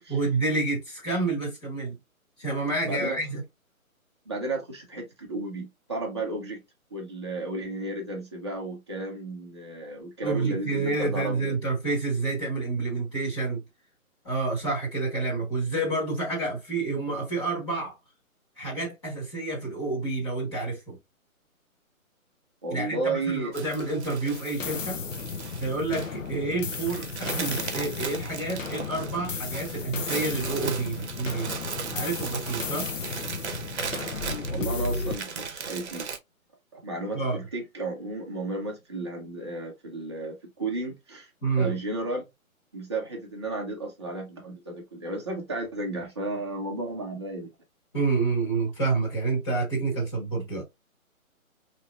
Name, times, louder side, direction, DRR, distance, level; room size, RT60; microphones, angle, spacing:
voice 1, 0.1-2.0 2.4-3.4 10.2-13.6 14.2-18.0 18.6-21.0 22.7-25.0 25.6-31.6 31.9-32.9 37.1-37.4 41.4-41.7 47.9-50.6, right 3 dB, 20° left, 1.4 m, -29 dB
voice 2, 2.8-3.2 4.3-6.6 6.9-11.5 22.6-23.5 34.5-36.1 36.7-41.3 41.6-42.2 42.7-47.5, right 2 dB, 20° right, 0.6 m, -33 dB
sound 1, 23.5-36.2, right 5 dB, 50° right, 0.8 m, -37 dB
sound 2, 24.3-35.2, left 4 dB, 60° left, 0.8 m, -34 dB
4.3 x 2.9 x 2.3 m
hypercardioid pair, 160°, 43 cm